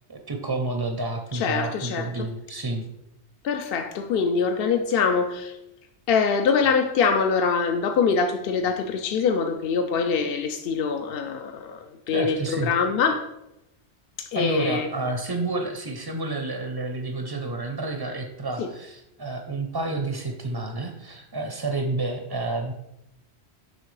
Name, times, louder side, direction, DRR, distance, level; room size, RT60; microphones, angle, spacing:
voice 1, 0.1-2.9 12.1-12.7 14.3-22.7, right 2 dB, 30° right, 4 dB, 0.5 m, -29 dB
voice 2, 1.3-2.3 3.4-5.6 6.1-13.3 14.2-14.9 18.6-18.7, left 5 dB, 65° left, 6 dB, 0.7 m, -24 dB
8.0 x 5.7 x 3.2 m, 0.86 s
omnidirectional pair, 1.1 m